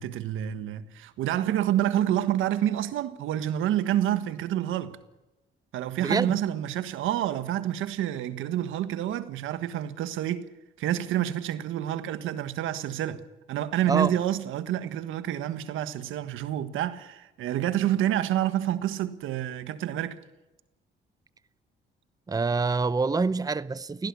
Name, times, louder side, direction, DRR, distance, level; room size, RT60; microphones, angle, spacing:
voice 1, 0.0-5.0 5.7-10.5 10.8-13.2 13.5-20.2, right 12 dB, 85° right, 1.5 m, -28 dB
voice 2, 6.0-6.4 13.9-14.1 22.3-24.1, right 4 dB, 20° right, 0.7 m, -26 dB
18.0 x 16.0 x 9.8 m
cardioid pair, 90°, 20 cm